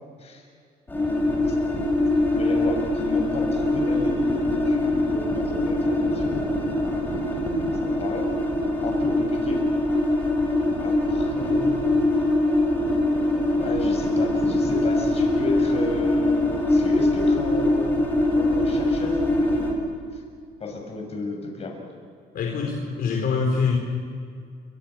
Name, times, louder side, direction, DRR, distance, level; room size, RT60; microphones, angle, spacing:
voice 1, 0.9-1.7 2.3-6.4 7.7-8.3 8.8-9.7 10.8-11.7 13.5-17.9 18.3-19.8 20.1-20.2 20.6-21.9, left 3 dB, 35° left, 2 dB, 7.1 m, -33 dB
sound 1, 0.9-19.7, left 1 dB, 10° left, 6.9 m, -23 dB
voice 2, 22.3-23.8, left 5 dB, 60° left, 0 dB, 4.5 m, -24 dB
29.5 x 25.0 x 6.1 m, 2.2 s
cardioid pair, 110°, 17 cm